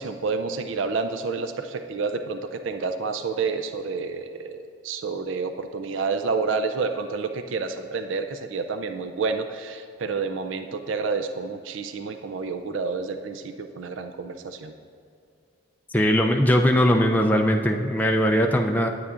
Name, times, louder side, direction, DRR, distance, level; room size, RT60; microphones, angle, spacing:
voice 1, 0.0-14.7, right 4 dB, 80° right, 8 dB, 0.4 m, -29 dB
voice 2, 15.9-18.9, equal, 10° left, 2 dB, 0.3 m, -20 dB
12.0 x 8.3 x 2.5 m, 2.4 s
head